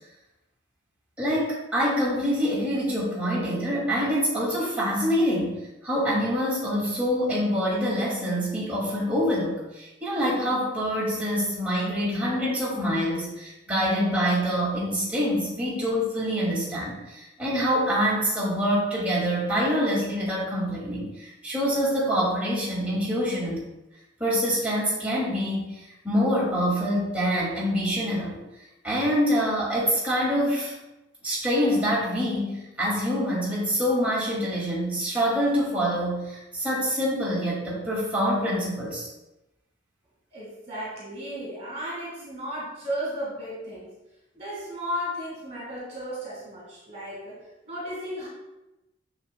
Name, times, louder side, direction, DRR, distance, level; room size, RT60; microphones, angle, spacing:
voice 1, 1.2-23.6 24.2-28.4 28.8-30.7 31.2-39.1, equal, 5° right, -8 dB, 2.2 m, -25 dB
voice 2, 40.3-43.9 44.3-47.4 47.6-48.3, equal, 35° right, -5 dB, 1.9 m, -34 dB
7.2 x 6.6 x 2.2 m, 0.97 s
head